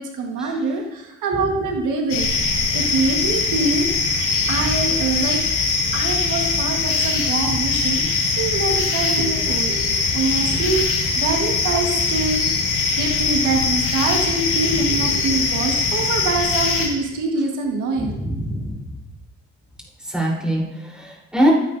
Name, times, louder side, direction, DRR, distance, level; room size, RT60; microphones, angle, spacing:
voice 1, 0.0-2.3 2.7-5.4 5.9-8.0 8.4-10.9 11.2-12.7 13.0-18.2, right 3 dB, 85° right, 1 dB, 1.5 m, -24 dB
sound 1, 2.1-16.9, left 4 dB, 85° left, 2.6 m, -21 dB
voice 2, 4.4-4.7 7.4-7.5 18.0-18.8 20.1-21.5, equal, 5° right, -4 dB, 3.7 m, -23 dB
15.0 x 9.4 x 2.6 m, 0.98 s
cardioid pair, 90°, 30 cm